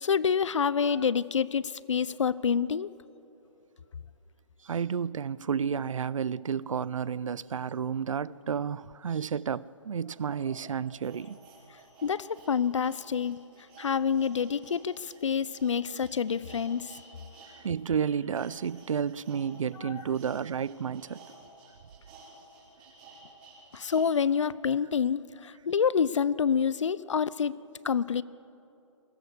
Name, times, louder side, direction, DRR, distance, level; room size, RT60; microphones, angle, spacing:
voice 1, 0.0-2.9 12.0-13.4 13.8-17.0 19.8-19.9 23.7-27.6 27.8-28.2, left 7 dB, 70° left, 0.7 m, -27 dB
voice 2, 4.6-11.4 17.6-21.3, right 7 dB, 80° right, 0.5 m, -31 dB
sound 1, 9.4-9.5 10.2-17.5 17.8-24.1 24.5-24.6, right 3 dB, 20° right, 4.5 m, -53 dB
22.0 x 18.0 x 6.8 m
hypercardioid pair, 175°, 16 cm